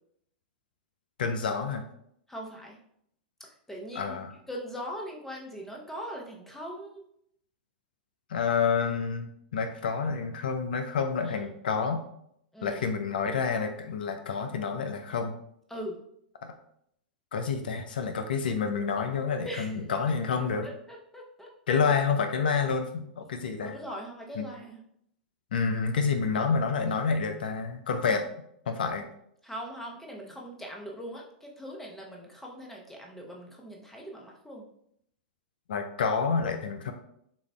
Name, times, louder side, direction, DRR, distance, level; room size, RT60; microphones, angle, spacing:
voice 1, 1.2-1.8 4.0-4.3 8.3-12.0 12.6-15.3 16.4-16.5 17.3-20.7 21.7-23.8 24.4-24.5 25.5-28.3 28.7-29.1 35.7-36.9, left 5 dB, 70° left, 7 dB, 0.4 m, -28 dB
voice 2, 2.3-2.8 3.4-4.1 4.5-7.0 11.3-11.5 12.5-12.8 15.7-16.0 19.4-19.7 20.6-21.5 23.6-24.8 29.4-34.6, equal, 5° left, -1 dB, 0.8 m, -41 dB
6.7 x 2.4 x 2.2 m, 0.72 s
figure-of-eight pair, 100°, 5 cm